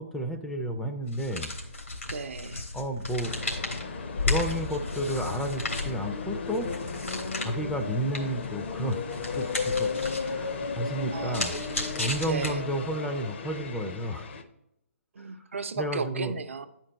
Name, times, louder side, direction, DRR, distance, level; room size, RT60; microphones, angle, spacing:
voice 1, 0.0-1.5 2.7-3.4 4.2-6.7 7.4-9.9 10.2-11.5 12.0-14.3 15.8-16.3, right 1 dB, 5° left, 4 dB, 0.4 m, -32 dB
sound 1, 1.1-12.9, left 3 dB, 85° left, 1.9 m, -35 dB
voice 2, 2.1-2.6 11.1-11.6 12.2-12.6 15.2-16.7, right 4 dB, 65° right, 9 dB, 0.6 m, -35 dB
sound 2, 3.2-14.4, left 4 dB, 55° left, 0.7 m, -35 dB
8.6 x 4.5 x 4.0 m, 0.86 s
figure-of-eight pair, 140°, 7 cm